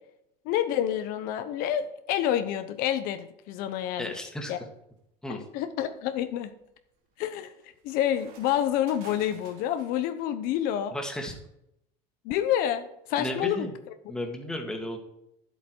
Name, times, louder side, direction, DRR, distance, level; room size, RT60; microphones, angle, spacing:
voice 1, 0.5-4.1 4.5-4.6 5.5-6.5 7.2-7.5 7.8-10.9 12.2-13.7, left 11 dB, 60° left, 9 dB, 0.9 m, -28 dB
voice 2, 4.0-4.5 5.2-5.4 10.9-11.4 13.2-13.7 14.1-15.0, left 1 dB, 5° left, 2 dB, 1.7 m, -34 dB
sound 1, 4.8-4.9 5.5-10.1, right 5 dB, 60° right, 2.9 m, -53 dB
11.0 x 8.0 x 4.6 m, 0.79 s
cardioid pair, 145°, 17 cm